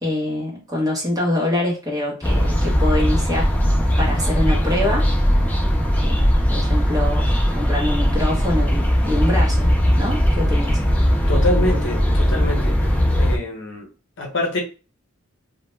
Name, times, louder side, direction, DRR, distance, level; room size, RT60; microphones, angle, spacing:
voice 1, 0.0-3.5 4.0-5.1 6.0-7.3 7.5-10.8, left 1 dB, 15° right, -3 dB, 0.8 m, -25 dB
sound 1, 2.2-13.4, equal, 5° left, 0.3 m, -19 dB
voice 2, 11.3-12.7 13.2-13.9 14.2-14.6, left 2 dB, 60° left, 0 dB, 0.7 m, -25 dB
2.2 x 2.1 x 3.0 m, 0.34 s
head